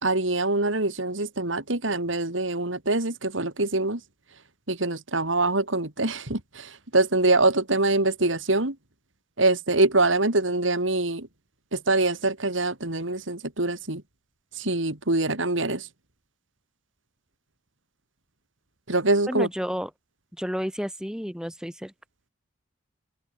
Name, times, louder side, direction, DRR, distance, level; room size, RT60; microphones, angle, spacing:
voice 1, 0.0-4.0 4.7-8.7 9.4-11.3 11.7-14.0 14.6-15.9 18.9-19.5, right 2 dB, 75° right, 3.3 m, -24 dB
voice 2, 19.3-19.9 20.4-21.9, equal, 5° right, 6.6 m, -31 dB
head